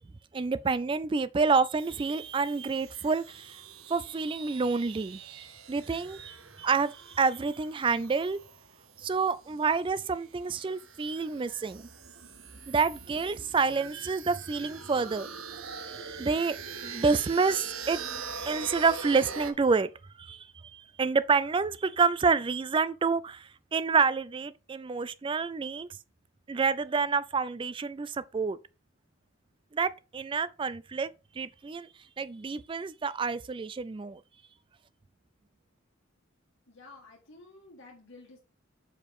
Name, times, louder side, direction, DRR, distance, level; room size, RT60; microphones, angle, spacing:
voice 1, 0.3-3.6 3.9-8.4 9.0-11.8 12.7-15.3 15.9-18.0 18.4-19.9 20.2-20.5 20.7-25.9 26.5-28.6 29.7-31.1 31.4-31.9 32.2-34.2, right 4 dB, 25° right, 0.3 m, -28 dB
sound 1, 1.8-19.5, right 5 dB, 75° right, 0.9 m, -44 dB
voice 2, 36.7-38.4, left 3 dB, 60° left, 1.6 m, -52 dB
6.6 x 5.0 x 3.6 m
head